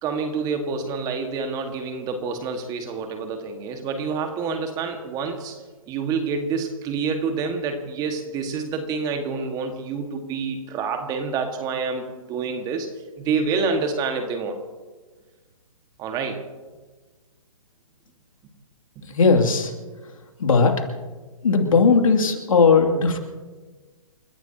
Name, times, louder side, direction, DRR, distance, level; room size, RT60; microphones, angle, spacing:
voice 1, 0.0-5.6 5.9-12.9 13.2-14.6 16.0-16.4 19.0-19.1, right 5 dB, 20° right, 5 dB, 1.8 m, -27 dB
voice 2, 19.0-19.7 20.0-20.1 20.4-20.8 21.4-23.2, left 4 dB, 70° left, 4 dB, 2.7 m, -18 dB
29.5 x 14.5 x 2.9 m, 1.3 s
hypercardioid pair, 135°, 18 cm